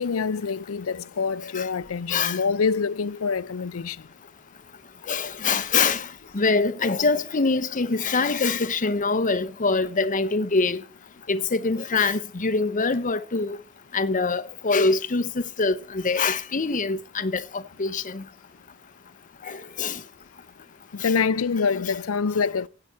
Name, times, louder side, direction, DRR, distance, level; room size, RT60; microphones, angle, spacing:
voice 1, 0.0-4.0 20.9-22.7, left 5 dB, 75° left, 0.5 m, -25 dB
voice 2, 5.1-6.1 6.3-10.8 11.3-13.6 13.9-18.2 19.5-20.0 21.0-21.1, left 4 dB, 40° left, 0.8 m, -24 dB
16.0 x 5.9 x 8.5 m
head